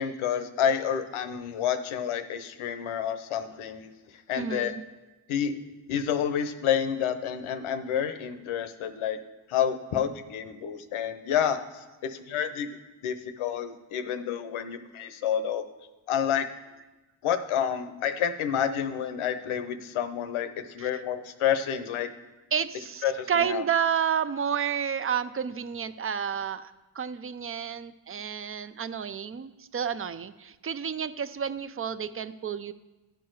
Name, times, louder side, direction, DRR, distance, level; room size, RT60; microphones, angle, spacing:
voice 1, 0.0-3.9 4.3-4.7 5.3-5.6 5.9-9.2 9.5-12.7 13.0-15.7 16.1-16.5 17.2-22.1 23.0-23.6, left 8 dB, 80° left, 10 dB, 0.7 m, -29 dB
voice 2, 4.3-4.8 20.8-21.0 22.5-32.7, right 7 dB, 30° right, 13 dB, 0.4 m, -30 dB
10.5 x 4.6 x 4.6 m, 1.1 s
supercardioid pair, 55°, 49 cm